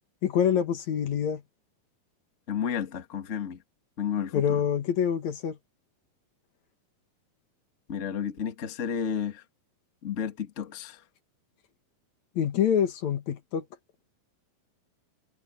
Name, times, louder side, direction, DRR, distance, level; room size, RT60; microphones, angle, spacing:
voice 1, 0.2-1.4 4.3-5.6 12.4-13.6, left 8 dB, 55° left, 2.5 m, -26 dB
voice 2, 2.5-3.6 4.0-4.6 7.9-9.4 10.0-11.0, left 8 dB, 75° left, 0.6 m, -32 dB
omnidirectional pair, 4.3 m